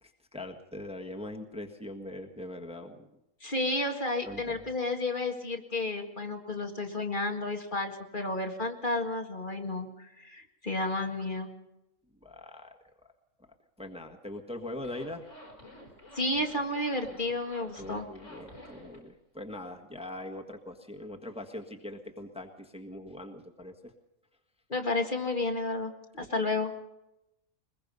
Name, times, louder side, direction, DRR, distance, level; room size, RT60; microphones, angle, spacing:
voice 1, 0.0-3.1 4.2-4.6 12.2-12.8 13.8-15.2 17.8-23.9, left 1 dB, 5° right, 3 dB, 1.5 m, -42 dB
voice 2, 3.4-11.5 16.2-18.1 24.7-26.7, left 2 dB, 40° left, 3 dB, 2.0 m, -32 dB
Zipper (clothing), 14.8-19.0, left 1 dB, 65° left, 5.5 m, -49 dB
23.0 x 21.0 x 5.5 m, 0.91 s
omnidirectional pair, 1.4 m